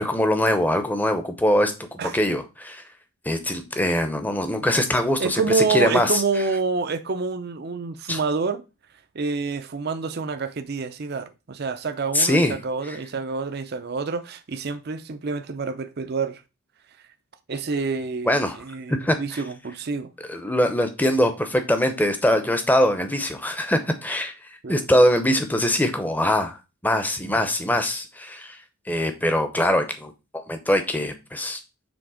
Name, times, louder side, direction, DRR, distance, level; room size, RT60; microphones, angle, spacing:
voice 1, 0.0-2.8 3.2-6.2 8.1-8.2 12.1-12.6 12.8-13.0 18.2-19.4 20.3-31.6, left 1 dB, 10° left, 0.7 m, -23 dB
voice 2, 5.2-8.6 9.1-16.4 17.5-18.4 18.7-18.9 19.2-20.1 24.6-24.8, right 4 dB, 45° right, 0.5 m, -27 dB
7.1 x 3.5 x 4.9 m
head